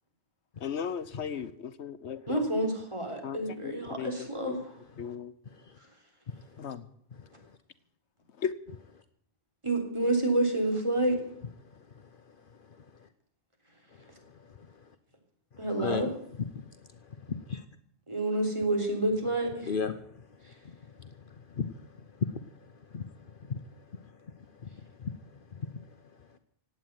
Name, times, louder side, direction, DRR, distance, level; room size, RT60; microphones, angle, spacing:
voice 1, 0.6-2.4 3.2-3.4 3.6-4.6 5.0-5.3 6.6-6.8 8.4-8.5, left 7 dB, 85° left, 13 dB, 1.2 m, -36 dB
voice 2, 1.1-1.5 5.5-5.8 6.3-6.7 7.2-7.4 11.6-12.8 14.0-14.9 15.5-16.0 16.4-17.6 19.7-25.9, left 5 dB, 55° left, 9 dB, 1.0 m, -39 dB
voice 3, 2.3-4.7 9.6-11.2 15.6-16.1 18.1-19.7, right 1 dB, 25° right, 2 dB, 3.7 m, -28 dB
17.0 x 8.9 x 9.4 m, 0.67 s
omnidirectional pair, 1.1 m